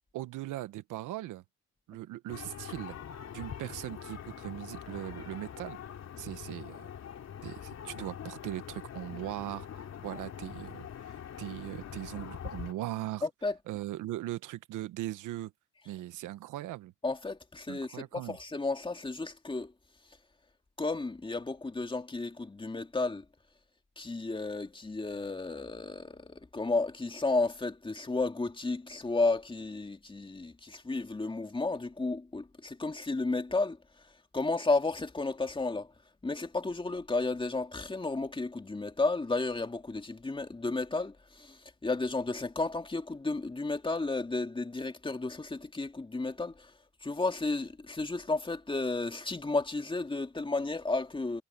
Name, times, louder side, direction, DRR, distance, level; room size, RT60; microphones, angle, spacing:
voice 1, 0.1-1.4 1.9-3.0 3.3-5.8 6.2-6.9 7.4-13.3 13.7-15.5 15.8-16.9 17.7-18.4, right 15 dB, 90° right, 1.1 m, -39 dB
sound 1, 2.3-12.7, left 8 dB, 60° left, 2.9 m, -44 dB
voice 2, 13.2-13.6 17.0-19.7 20.8-23.2 24.0-33.8 34.3-35.9 36.2-46.7 47.0-51.4, left 3 dB, 15° left, 2.2 m, -32 dB
cardioid pair, 90°, 30 cm